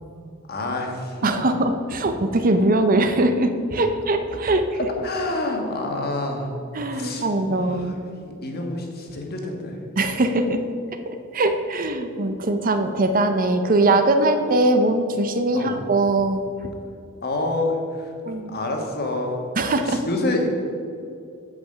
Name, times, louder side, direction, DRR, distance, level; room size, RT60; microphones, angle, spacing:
voice 1, 0.5-1.3 5.0-6.5 6.9-7.9 8.2-9.8 15.5-15.8 17.2-19.4 19.8-20.5, left 2 dB, 50° left, 2 dB, 1.4 m, -28 dB
voice 2, 1.2-4.6 6.7-7.9 10.0-10.6 11.1-16.7 18.3-18.6 19.6-20.0, right 2 dB, 40° right, 8 dB, 0.6 m, -21 dB
8.7 x 5.6 x 6.7 m, 2.5 s
head